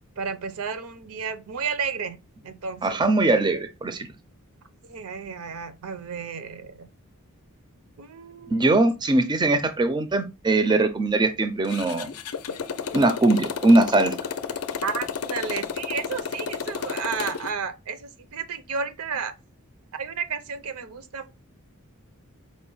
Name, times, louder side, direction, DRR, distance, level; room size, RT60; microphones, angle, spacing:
voice 1, 0.2-2.2 2.4-3.0 4.9-6.9 8.0-8.8 14.8-19.3 19.9-21.3, right 5 dB, 75° right, 0.5 m, -32 dB
voice 2, 2.8-4.1 8.5-12.1 12.9-14.1, right 2 dB, 20° right, 0.3 m, -21 dB
Motorcycle, 11.6-17.5, left 6 dB, 75° left, 0.4 m, -32 dB
4.9 x 2.1 x 3.8 m
head